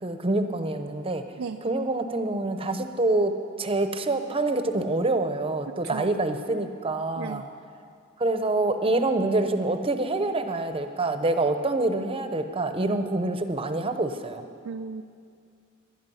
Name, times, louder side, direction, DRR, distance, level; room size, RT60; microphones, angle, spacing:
voice 1, 0.0-1.2 1.6-7.5 8.2-14.4, right 2 dB, 25° right, 8 dB, 0.8 m, -26 dB
voice 2, 5.7-6.1 7.2-7.5 14.6-15.0, right 5 dB, 85° right, 7 dB, 0.5 m, -35 dB
20.0 x 11.5 x 5.6 m, 2.4 s
head